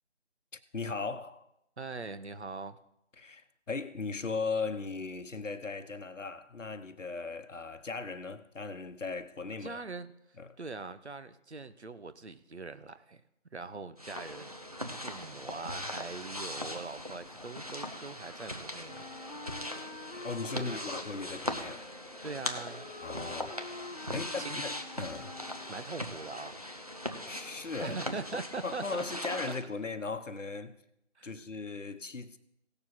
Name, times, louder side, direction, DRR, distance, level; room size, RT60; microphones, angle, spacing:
voice 1, 0.7-1.4 3.2-9.8 10.4-10.6 20.2-21.9 23.0-23.6 24.1-25.3 27.2-28.0 28.6-30.8 31.2-32.4, left 4 dB, 80° left, 1.1 m, -38 dB
voice 2, 1.8-2.8 9.6-10.1 10.6-13.2 13.5-14.6 15.0-19.1 20.5-20.8 22.2-22.9 24.1-24.6 25.7-26.5 27.8-29.0 31.2-31.3, right 4 dB, 60° right, 0.9 m, -42 dB
sound 1, 14.0-29.6, left 1 dB, 30° right, 0.7 m, -40 dB
Wind instrument woodwind instrument, 18.9-25.9, left 3 dB, 50° left, 0.7 m, -47 dB
17.5 x 6.9 x 4.2 m
figure-of-eight pair, 170°, 37 cm